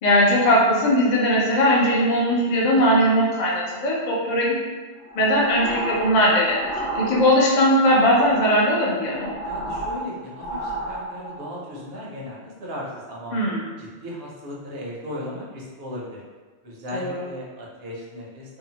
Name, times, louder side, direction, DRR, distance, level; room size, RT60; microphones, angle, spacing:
voice 1, 0.0-4.5 5.1-6.7 6.9-9.3 13.3-13.6 16.9-17.2, equal, 50° left, -4 dB, 0.6 m, -19 dB
sound 1, 5.0-7.6 8.0-11.5, right 1 dB, 80° left, 1.0 m, -32 dB
voice 2, 9.4-13.4 13.8-16.2 16.6-18.6, left 1 dB, 60° right, -5 dB, 0.9 m, -36 dB
2.7 x 2.1 x 2.7 m, 1.4 s
omnidirectional pair, 1.2 m